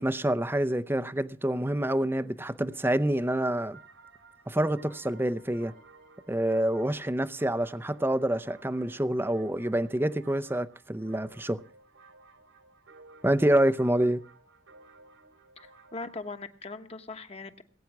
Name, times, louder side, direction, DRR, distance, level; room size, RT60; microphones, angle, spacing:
voice 1, 0.0-3.8 4.5-5.7 6.3-11.6 13.2-14.2, right 1 dB, 10° right, 0.6 m, -27 dB
sound 1, 3.5-16.4, right 3 dB, 85° right, 2.8 m, -56 dB
voice 2, 15.6-17.6, left 3 dB, 30° left, 1.3 m, -40 dB
20.0 x 9.3 x 5.9 m
head